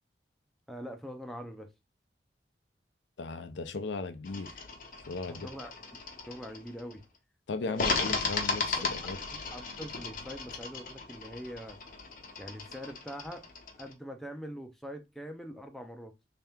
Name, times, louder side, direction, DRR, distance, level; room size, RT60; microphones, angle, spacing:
voice 1, 0.7-1.7 5.3-5.7 6.3-7.0 7.6-8.0 9.0-9.2 9.5-11.8 12.4-13.4 13.8-16.1, equal, ahead, 0.5 m, -43 dB
voice 2, 3.2-4.7 5.1-5.5 7.5-9.2, left 3 dB, 85° left, 0.5 m, -37 dB
sound 1, 4.3-6.9 7.7-13.9, left 4 dB, 50° left, 0.7 m, -36 dB
3.3 x 2.8 x 3.5 m
head